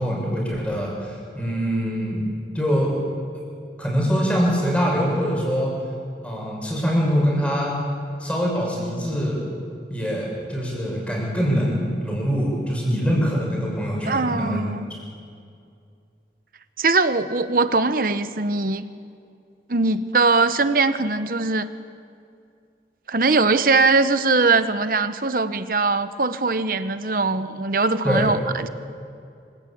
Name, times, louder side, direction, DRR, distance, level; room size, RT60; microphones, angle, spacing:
voice 1, 0.0-3.0 3.8-5.7 6.2-7.8 8.2-9.4 9.9-14.6 28.0-28.4, equal, 5° left, -2 dB, 6.5 m, -23 dB
voice 2, 14.1-14.9 16.8-18.8 19.7-21.7 23.1-28.7, right 3 dB, 50° right, 11 dB, 1.0 m, -21 dB
26.0 x 16.5 x 8.7 m, 2.4 s
head